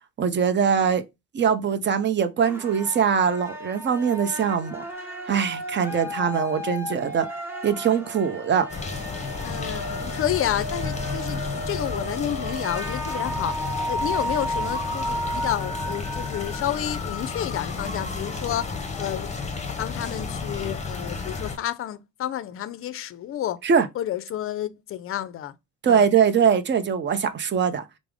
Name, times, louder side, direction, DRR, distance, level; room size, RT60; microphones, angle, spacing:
voice 1, 0.2-1.0 1.3-4.8 5.3-7.3 7.6-8.7 23.6-23.9 25.8-27.8, right 7 dB, 35° right, 0.6 m, -22 dB
sound 1, 2.4-17.4, equal, 5° right, 1.1 m, -33 dB
sound 2, 8.7-21.6, left 4 dB, 25° left, 0.8 m, -32 dB
voice 2, 9.4-11.4 11.7-13.5 13.9-19.3 19.8-23.6 24.0-25.5 25.9-26.0, left 11 dB, 45° left, 0.4 m, -30 dB
4.6 x 2.0 x 3.5 m
cardioid pair, 90°, 30 cm